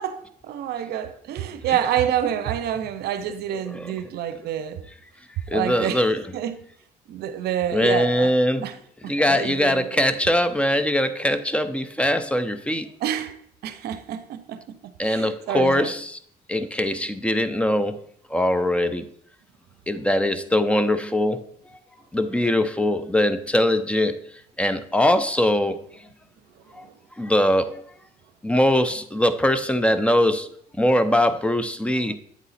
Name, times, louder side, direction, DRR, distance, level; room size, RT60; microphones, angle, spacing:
voice 1, 0.0-4.8 5.5-6.1 6.3-6.6 7.1-8.3 8.6-8.7 9.0-10.1 13.0-13.3 13.6-16.0 26.8-26.9, right 10 dB, 70° right, 0.6 m, -28 dB
voice 2, 5.5-6.2 7.7-8.7 9.1-12.9 15.0-16.2 16.5-18.0 18.3-19.0 19.9-21.4 22.1-24.2 24.6-25.8 26.7-26.9 27.2-27.8 28.4-30.5 30.8-32.1, left 1 dB, 5° left, 0.5 m, -21 dB
8.3 x 4.0 x 4.1 m
cardioid pair, 110°, 17 cm